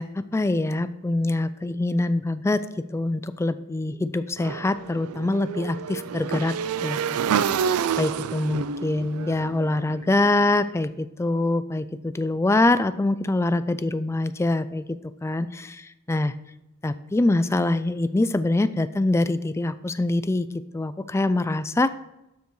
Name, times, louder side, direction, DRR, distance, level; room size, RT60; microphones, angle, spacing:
voice 1, 0.0-2.7 2.9-6.5 6.8-7.2 7.7-14.8 15.2-15.8 16.1-16.3 16.8-20.5 20.7-21.9, left 2 dB, 10° left, 13 dB, 0.3 m, -24 dB
Motorcycle / Engine, 4.4-10.5, right 7 dB, 75° right, 0.4 m, -28 dB
12.0 x 6.7 x 3.1 m, 0.89 s
head